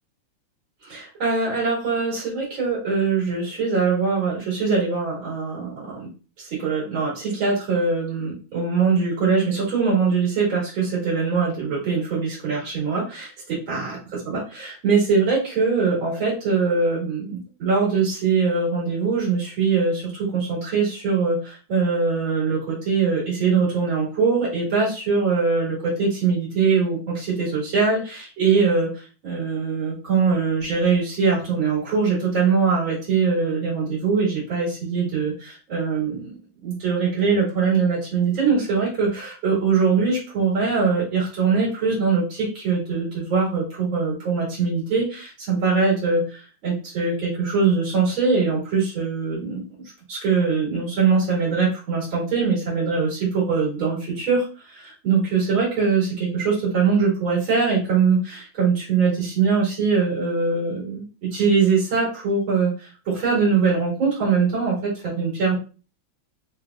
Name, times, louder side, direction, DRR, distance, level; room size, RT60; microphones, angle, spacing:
voice 1, 0.8-6.1 6.4-36.4 36.6-49.6 50.1-65.5, right 5 dB, 70° right, -5 dB, 3.0 m, -22 dB
5.2 x 3.2 x 2.3 m, 0.36 s
omnidirectional pair, 2.3 m